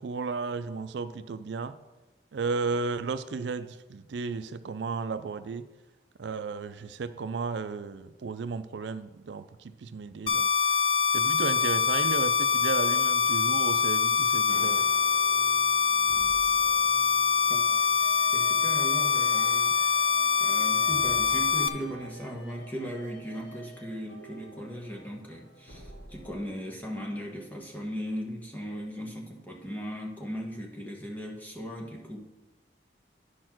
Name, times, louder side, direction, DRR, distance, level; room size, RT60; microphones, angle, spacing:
voice 1, 0.0-1.8 2.3-5.7 6.2-10.5 11.1-14.9, right 4 dB, 85° right, 12 dB, 0.4 m, -34 dB
sound 1, 10.3-21.7, left 6 dB, 30° left, 0.4 m, -24 dB
sound 2, 14.5-26.4, right 1 dB, 90° left, 1.4 m, -49 dB
voice 2, 17.5-20.0 20.4-32.2, equal, 10° left, 0 dB, 1.2 m, -38 dB
10.0 x 4.3 x 6.0 m, 1.1 s
head